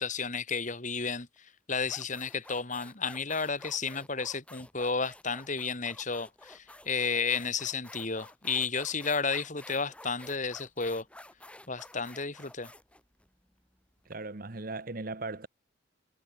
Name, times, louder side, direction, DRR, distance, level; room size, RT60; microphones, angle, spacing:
voice 1, 0.0-11.1 11.7-12.7, left 5 dB, 40° left, 2.2 m, -32 dB
sound 1, 1.2-1.4 1.8-14.1, left 1 dB, 5° left, 2.8 m, -51 dB
voice 2, 14.1-15.5, right 3 dB, 45° right, 1.1 m, -38 dB
head